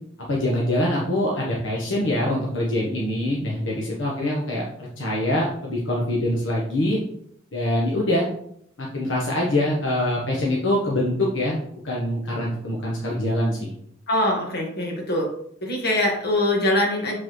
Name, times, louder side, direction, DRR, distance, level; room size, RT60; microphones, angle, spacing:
voice 1, 0.2-7.0 7.5-8.2 8.8-11.6 11.8-13.7, left 1 dB, 75° left, -4 dB, 1.2 m, -24 dB
voice 2, 14.1-15.3 15.6-17.2, left 1 dB, 55° left, -1 dB, 1.8 m, -23 dB
7.5 x 4.1 x 3.1 m, 0.70 s
head